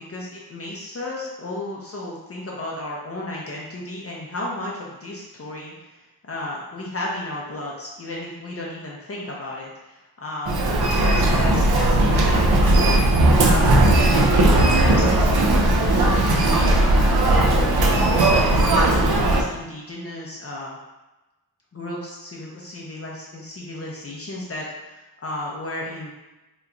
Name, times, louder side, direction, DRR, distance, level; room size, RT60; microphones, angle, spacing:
voice 1, 0.0-10.7 11.0-20.8 21.7-26.1, left 2 dB, 40° left, -4 dB, 0.5 m, -34 dB
Human voice, 10.4-19.4, right 1 dB, 80° right, 0.5 m, -17 dB
2.9 x 2.3 x 3.7 m, 1.1 s
wide cardioid pair, 125°, 37 cm